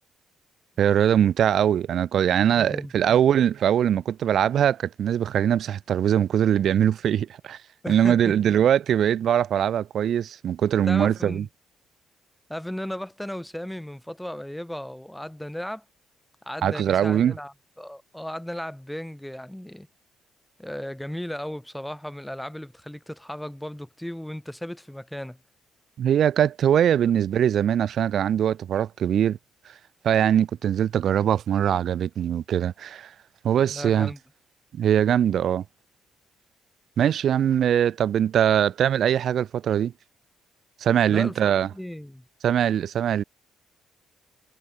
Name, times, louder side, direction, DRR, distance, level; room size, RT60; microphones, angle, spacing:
voice 1, 0.8-7.6 7.9-11.4 16.6-17.3 26.0-29.4 30.0-33.1 33.4-34.1 34.7-35.6 37.0-39.9 40.8-41.7 42.4-43.2, right 9 dB, 65° right, 0.4 m, -22 dB
voice 2, 2.4-3.1 7.8-8.6 10.8-11.5 12.5-15.8 16.4-19.9 20.6-25.4 33.7-34.2 41.1-42.3, left 1 dB, 5° left, 4.4 m, -36 dB
cardioid pair, 90°, 0 cm